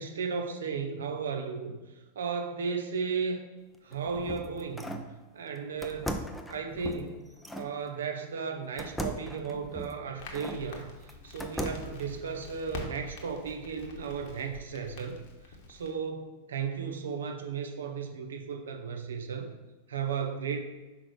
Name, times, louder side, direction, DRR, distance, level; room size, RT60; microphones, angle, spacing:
voice 1, 0.0-3.4 3.8-6.2 6.5-19.5 19.9-20.6, right 5 dB, 65° right, 4 dB, 0.7 m, -35 dB
sound 1, 3.7-5.1 5.8-7.7 8.8-10.6 11.1-12.0, equal, 5° left, 0.5 m, -38 dB
Crackle, 10.2-15.9, left 3 dB, 50° left, 1.1 m, -45 dB
6.0 x 4.9 x 3.2 m, 1.2 s
figure-of-eight pair, 90°, 0 cm